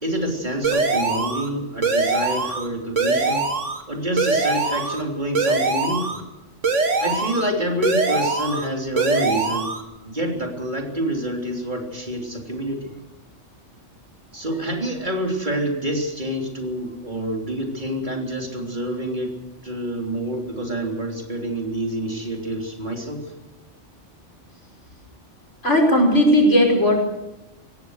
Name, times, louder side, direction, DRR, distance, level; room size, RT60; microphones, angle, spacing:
voice 1, 0.0-3.5 3.9-6.2 7.0-9.7 10.0-12.9 14.3-19.3 19.6-23.2, right 1 dB, 40° right, 1 dB, 3.6 m, -27 dB
sound 1, 0.6-1.5 1.8-2.7 3.0-3.8 4.2-5.0 5.3-6.2 6.6-7.5 7.8-8.7 9.0-9.8, right 3 dB, 85° right, 2.3 m, -22 dB
voice 2, 25.6-27.0, equal, 75° left, 1 dB, 5.8 m, -16 dB
23.5 x 17.5 x 6.5 m, 0.98 s
omnidirectional pair, 1.2 m